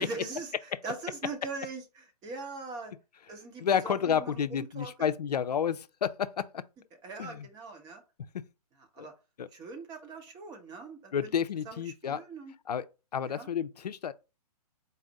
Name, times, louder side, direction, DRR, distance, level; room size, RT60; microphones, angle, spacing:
voice 1, 0.0-2.9 3.3-5.2 7.0-8.0 8.9-9.1 9.5-11.3 11.7-12.5 13.3-13.5, right 3 dB, 20° right, 0.8 m, -41 dB
voice 2, 3.6-6.7 7.2-7.5 8.3-8.5 9.0-9.1 9.4-9.5 11.1-12.2 12.7-12.9 13.1-14.1, left 8 dB, 80° left, 0.5 m, -30 dB
4.1 x 2.5 x 4.0 m
hypercardioid pair, 135°, 20 cm